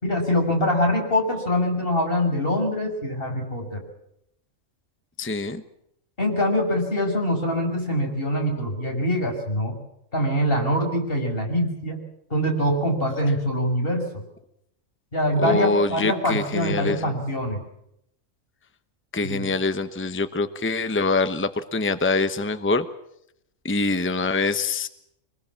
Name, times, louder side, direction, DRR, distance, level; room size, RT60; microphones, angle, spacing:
voice 1, 0.0-3.8 6.2-9.8 10.1-12.0 12.3-14.1 15.1-17.6 19.2-19.5, equal, 50° left, 2 dB, 6.4 m, -24 dB
voice 2, 5.2-5.6 15.4-17.1 19.1-22.9 23.6-24.9, left 3 dB, 10° left, 10 dB, 1.0 m, -24 dB
25.5 x 21.0 x 7.3 m, 0.76 s
omnidirectional pair, 1.3 m